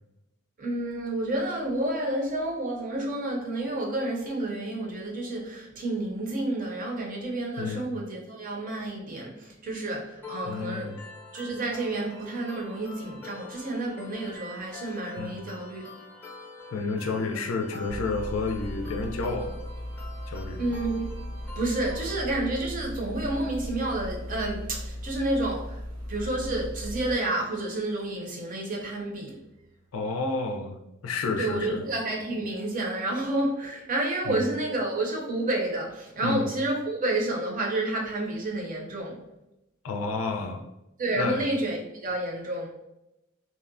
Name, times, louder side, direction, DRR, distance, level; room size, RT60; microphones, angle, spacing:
voice 1, 0.6-11.0 11.3-15.9 20.6-21.1 21.6-25.8 26.1-29.4 31.4-39.2 41.0-42.7, right 2 dB, 40° right, 0 dB, 0.6 m, -30 dB
voice 2, 7.6-7.9 10.5-11.0 15.2-15.4 16.7-19.5 20.3-20.6 29.9-31.8 34.3-34.5 36.2-36.5 39.8-40.6 41.2-41.4, left 3 dB, 80° left, 3 dB, 0.4 m, -30 dB
sound 1, 10.2-22.2, left 2 dB, 10° left, 0.5 m, -46 dB
sound 2, 17.9-27.1, equal, 75° right, 0.7 m, -37 dB
2.7 x 2.0 x 2.5 m, 0.90 s
head